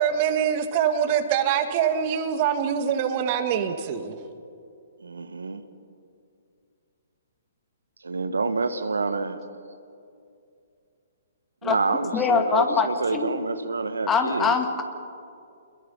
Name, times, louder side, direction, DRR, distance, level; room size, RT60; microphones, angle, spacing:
voice 1, 0.0-4.2, right 8 dB, 40° right, 8 dB, 2.0 m, -24 dB
voice 2, 5.0-5.6 8.0-9.4 11.6-14.5, right 3 dB, 80° right, 10 dB, 1.3 m, -27 dB
voice 3, 11.6-13.4 14.1-14.8, left 5 dB, 15° left, 5 dB, 2.0 m, -24 dB
28.5 x 21.5 x 5.7 m, 2.5 s
figure-of-eight pair, 125°, 0 cm